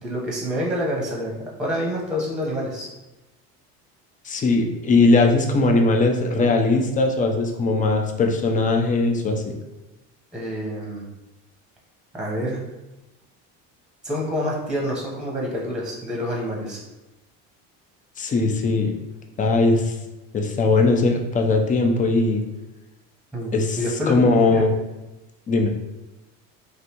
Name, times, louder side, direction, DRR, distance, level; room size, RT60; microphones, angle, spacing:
voice 1, 0.0-2.9 10.3-11.0 12.1-12.6 14.0-16.8 23.3-23.5 23.8-24.1 24.5-24.6, equal, ahead, -3 dB, 1.0 m, -27 dB
voice 2, 4.2-9.4 18.2-18.9 19.4-19.9 20.3-22.4 23.5-23.8 24.1-24.7 25.5-25.7, left 3 dB, 25° left, 3 dB, 0.5 m, -19 dB
3.2 x 2.7 x 2.9 m, 1.0 s
supercardioid pair, 100°, 34 cm